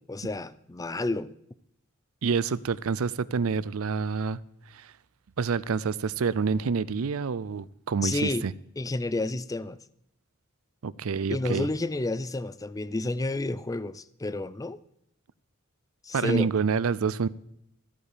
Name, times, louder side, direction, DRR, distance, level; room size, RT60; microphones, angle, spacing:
voice 1, 0.1-1.3 8.0-8.5 8.8-9.8 11.3-14.8 16.0-16.5, left 2 dB, 15° left, 0.4 m, -30 dB
voice 2, 2.2-4.4 4.7-4.9 5.4-8.5 10.8-11.7 16.1-17.3, right 5 dB, 80° right, 0.5 m, -27 dB
14.0 x 8.8 x 5.1 m
head